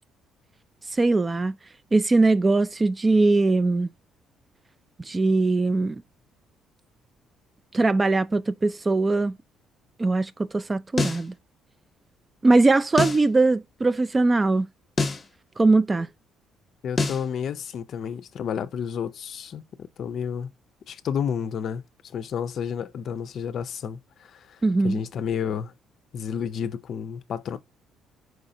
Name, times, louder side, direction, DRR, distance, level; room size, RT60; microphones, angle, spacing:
voice 1, 0.9-1.6 1.9-3.9 5.0-6.0 7.7-9.4 10.0-11.3 12.4-14.7 15.6-16.1 24.6-25.0, right 3 dB, 20° right, 0.3 m, -21 dB
sound 1, 11.0-11.3 13.0-13.3 15.0-15.3 17.0-17.3, left 3 dB, 25° left, 0.8 m, -25 dB
voice 2, 16.8-20.5 20.9-21.8 22.1-25.7 26.1-27.6, left 7 dB, 55° left, 0.5 m, -31 dB
4.8 x 3.8 x 2.6 m
cardioid pair, 115°, 0 cm